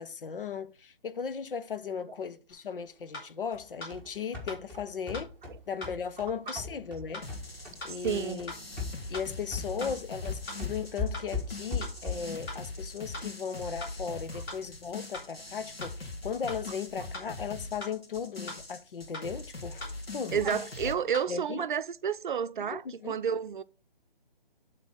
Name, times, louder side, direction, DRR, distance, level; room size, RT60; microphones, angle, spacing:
voice 1, 0.0-5.3 5.7-7.3 7.8-8.5 9.1-20.4 21.3-21.6 22.7-23.2, left 6 dB, 65° left, 0.8 m, -37 dB
sound 1, 2.5-2.6 3.1-3.3 3.8-3.9 4.5-4.6 5.1-5.3 5.8-5.9 6.5-6.6 7.1-7.3 7.8-7.9 8.5-8.6 9.1-9.3 9.8-9.9 10.5-10.6 11.1-11.3 11.8-11.9 12.5-12.6 13.1-13.3 13.8-13.9 14.5-14.6 15.1-15.3 15.8-15.9 16.5-16.6 17.1-17.3 17.8-17.9 18.5-18.6 19.1-19.3 19.8-19.9 20.5-20.6 21.1-21.3, left 2 dB, 20° left, 3.2 m, -41 dB
sound 2, 3.5-12.4, left 4 dB, 5° left, 1.3 m, -38 dB
sound 3, 7.2-20.9, left 3 dB, 85° left, 2.1 m, -42 dB
voice 2, 8.0-8.4 20.3-23.6, right 7 dB, 55° right, 0.6 m, -30 dB
9.0 x 4.0 x 5.4 m
figure-of-eight pair, 145°, 29 cm